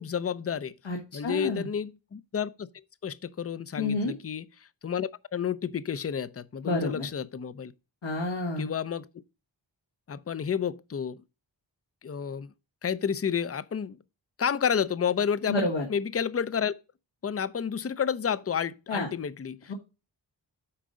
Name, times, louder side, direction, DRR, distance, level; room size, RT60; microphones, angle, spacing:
voice 1, 0.0-0.8 1.1-2.7 3.0-7.7 8.6-9.1 10.1-11.2 12.0-12.5 12.8-14.0 14.4-16.7 17.2-19.7, left 7 dB, 35° left, 0.5 m, -30 dB
voice 2, 0.8-1.7 3.8-4.1 6.6-7.1 8.0-8.7 15.5-15.9 18.9-19.1 19.7-19.8, left 2 dB, 85° left, 1.7 m, -29 dB
8.6 x 5.1 x 3.7 m
wide cardioid pair, 75°, 45 cm